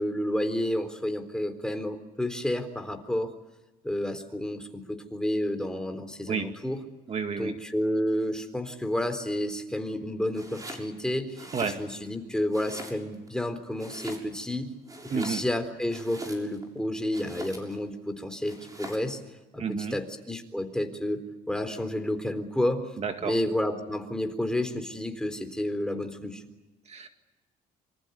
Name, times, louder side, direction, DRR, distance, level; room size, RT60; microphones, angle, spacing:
voice 1, 0.0-3.4 3.8-6.8 7.4-14.7 15.2-19.2 19.5-19.6 19.9-21.2 21.5-22.9 23.2-26.4, left 1 dB, 5° left, 6 dB, 3.9 m, -30 dB
voice 2, 7.1-7.6 11.5-11.8 15.1-15.4 19.6-20.0 23.0-23.4 26.9-27.1, right 6 dB, 40° right, 6 dB, 2.1 m, -31 dB
Domestic sounds home sounds, 10.3-10.9 11.3-12.2 12.5-13.3 13.8-14.5 14.8-16.7 17.1-17.8 18.5-19.1, right 1 dB, 20° right, 7.1 m, -43 dB
27.5 x 25.5 x 8.4 m, 1.1 s
cardioid pair, 110°, 17 cm